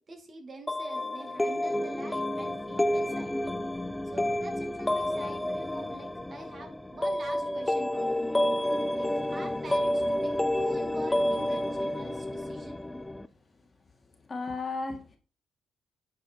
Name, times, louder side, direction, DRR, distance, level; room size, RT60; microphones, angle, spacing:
voice 1, 0.0-3.4 4.1-8.3 9.0-12.8, right 2 dB, 40° right, 3 dB, 2.4 m, -45 dB
sound 1, 0.7-13.3, left 1 dB, 10° left, 0.5 m, -30 dB
voice 2, 11.3-11.6 12.7-12.8 13.5-13.7 14.1-15.2, left 3 dB, 30° left, 3 dB, 2.1 m, -37 dB
9.8 x 4.6 x 4.6 m, 0.37 s
cardioid pair, 90°, 0 cm